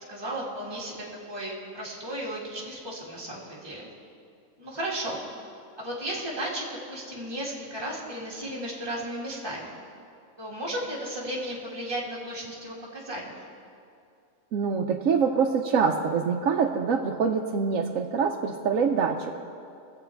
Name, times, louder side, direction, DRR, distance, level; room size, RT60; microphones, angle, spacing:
voice 1, 0.1-3.9 4.6-5.2 5.8-9.8 10.4-13.3, right 1 dB, 20° right, -5 dB, 2.0 m, -34 dB
voice 2, 14.5-19.4, right 6 dB, 80° right, 1 dB, 1.1 m, -25 dB
21.0 x 7.9 x 4.5 m, 2.5 s
omnidirectional pair, 1.4 m